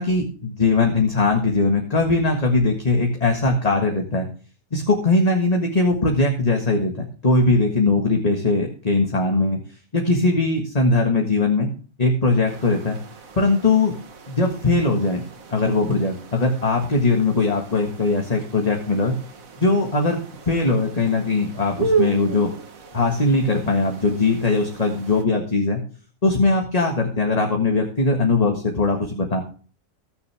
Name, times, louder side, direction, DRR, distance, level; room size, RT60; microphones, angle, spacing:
voice 1, 0.0-4.3 4.7-9.6 9.9-11.7 12.0-13.0 13.4-13.9 14.3-15.2 15.5-19.2 19.6-20.2 20.5-22.5 22.9-25.8 26.2-29.4, left 3 dB, 25° left, 2 dB, 1.7 m, -20 dB
sound 1, 12.4-25.2, right 5 dB, 60° right, 1.8 m, -33 dB
21.0 x 7.0 x 3.5 m, 0.40 s
omnidirectional pair, 1.6 m